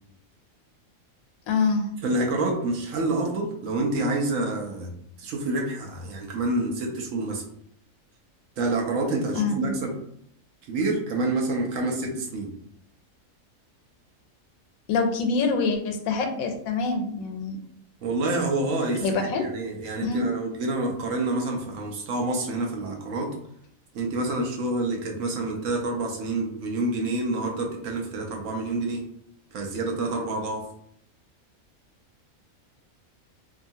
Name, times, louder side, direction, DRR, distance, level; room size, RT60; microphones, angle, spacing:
voice 1, 1.5-1.9 9.3-9.7 14.9-17.6 19.0-19.5 20.0-20.3, left 4 dB, 90° left, 5 dB, 1.0 m, -25 dB
voice 2, 2.0-4.9 5.2-7.4 8.6-9.9 10.7-12.5 18.0-23.3 23.9-29.0 29.5-30.6, right 2 dB, 70° right, 0 dB, 1.0 m, -27 dB
2.8 x 2.3 x 2.6 m, 0.71 s
omnidirectional pair, 1.4 m